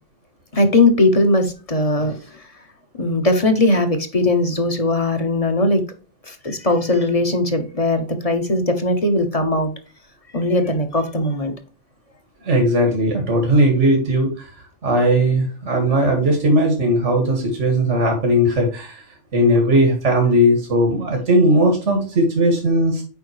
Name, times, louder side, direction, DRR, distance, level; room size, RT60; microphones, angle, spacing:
voice 1, 0.5-2.5 3.0-5.8 6.3-9.7 10.3-11.5, left 2 dB, 30° left, 6 dB, 1.1 m, -19 dB
voice 2, 12.4-14.5 14.8-19.0 19.3-23.0, equal, 85° right, 3 dB, 2.1 m, -17 dB
8.1 x 5.1 x 3.2 m, 0.37 s
omnidirectional pair, 1.2 m